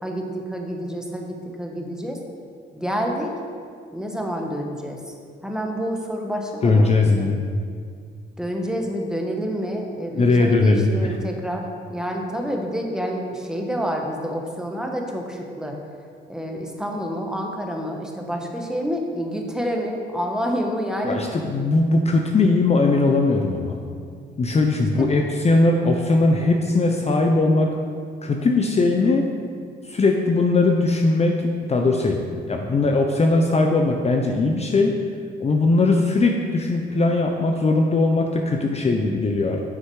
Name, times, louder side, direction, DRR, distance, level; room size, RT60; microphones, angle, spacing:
voice 1, 0.0-2.2 2.7-3.3 3.9-5.1 5.4-7.3 8.4-15.8 16.3-21.2 25.0-25.1, equal, 5° right, 1 dB, 1.3 m, -28 dB
voice 2, 6.6-7.4 10.2-10.9 21.1-23.8 24.4-27.7 28.2-29.3 29.8-32.2 32.5-35.0 35.4-39.6, left 3 dB, 30° left, 2 dB, 0.8 m, -19 dB
9.5 x 6.4 x 4.8 m, 2.1 s
cardioid pair, 90°, 20 cm